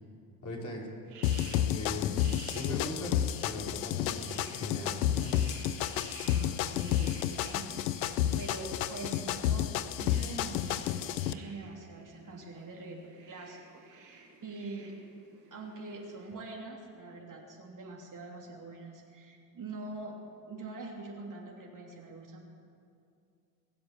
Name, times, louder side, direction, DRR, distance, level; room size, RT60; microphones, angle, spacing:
voice 1, 0.4-0.9 1.4-5.4, left 1 dB, 35° left, -3 dB, 4.7 m, -39 dB
sound 1, 1.0-16.3, right 4 dB, 80° right, 4.6 m, -53 dB
sound 2, 1.2-11.3, left 11 dB, 90° left, 0.6 m, -31 dB
voice 2, 6.2-9.7 10.0-14.9 15.5-20.1 20.4-22.4, right 3 dB, 40° right, -1 dB, 3.1 m, -44 dB
22.0 x 7.7 x 8.4 m, 2.4 s
hypercardioid pair, 60°, 50 cm